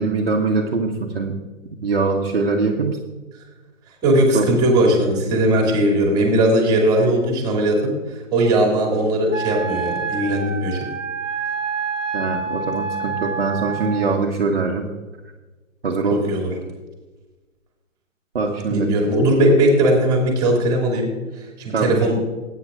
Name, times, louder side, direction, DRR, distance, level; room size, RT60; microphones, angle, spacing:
voice 1, 0.0-1.4 1.8-3.0 4.3-4.5 12.1-14.9 15.8-16.2 18.3-18.9 21.7-21.9, right 4 dB, 50° right, 0 dB, 1.2 m, -22 dB
voice 2, 4.0-7.9 8.3-10.9 16.1-16.5 18.7-21.1 21.6-22.2, right 1 dB, 10° right, 0 dB, 2.4 m, -18 dB
Wind instrument woodwind instrument, 9.3-14.2, right 6 dB, 70° right, 1.0 m, -27 dB
20.0 x 9.0 x 2.5 m, 1.2 s
figure-of-eight pair, 135°, 39 cm